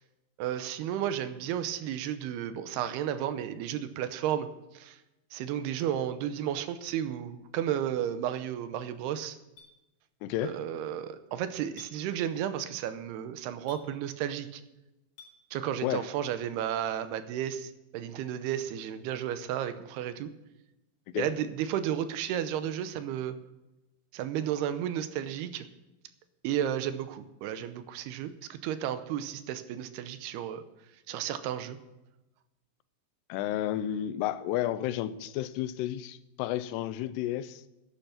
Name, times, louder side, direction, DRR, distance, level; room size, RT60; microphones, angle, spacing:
voice 1, 0.4-4.5 4.7-5.0 5.3-9.4 10.4-14.6 15.5-20.3 21.2-23.4 24.1-25.7 26.4-30.6 31.1-31.8, right 10 dB, 85° right, 2.7 m, -33 dB
Chink clink, 9.6-9.7 11.8-11.9 13.7-13.9 15.2-15.3, left 4 dB, 60° left, 4.3 m, -50 dB
voice 2, 10.2-10.6 15.8-16.1 21.1-21.3 33.3-37.6, left 12 dB, 85° left, 2.7 m, -32 dB
11.5 x 10.5 x 5.8 m
omnidirectional pair, 4.7 m